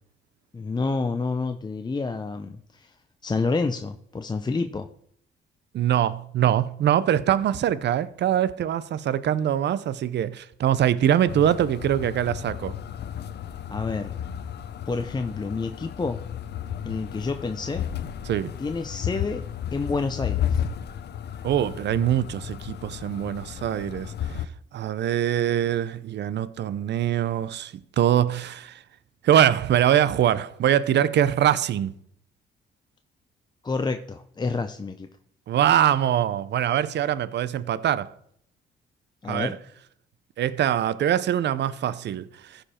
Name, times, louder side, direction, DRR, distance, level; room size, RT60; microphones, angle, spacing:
voice 1, 0.5-2.9 3.2-4.9 13.7-14.1 14.9-16.2 16.9-17.9 18.6-19.4 19.7-20.6 33.6-35.1 39.2-39.5, left 4 dB, 20° left, 0.6 m, -28 dB
voice 2, 5.7-12.7 18.3-18.5 21.4-24.1 24.7-28.8 29.2-31.9 35.5-38.1 39.3-39.6 40.4-42.6, right 10 dB, 60° right, 0.6 m, -23 dB
sound 1, 11.3-24.5, left 9 dB, 60° left, 0.7 m, -33 dB
14.5 x 5.2 x 4.3 m
cardioid pair, 90°, 20 cm